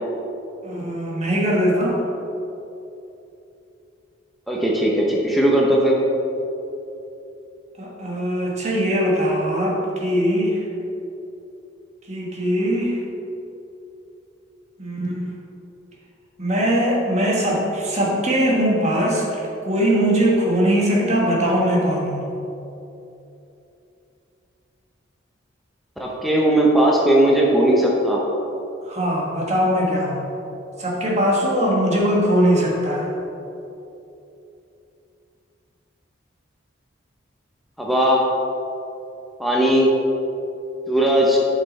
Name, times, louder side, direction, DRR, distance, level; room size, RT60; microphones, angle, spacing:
voice 1, 0.6-2.0 7.8-10.6 12.1-13.0 14.8-15.3 16.4-22.3 28.9-30.3 30.8-33.1, equal, 35° right, -3 dB, 1.5 m, -21 dB
voice 2, 4.5-6.0 26.0-28.2 37.8-38.3 39.4-39.9 40.9-41.4, right 1 dB, ahead, -4 dB, 0.8 m, -18 dB
8.6 x 5.6 x 4.2 m, 2.9 s
head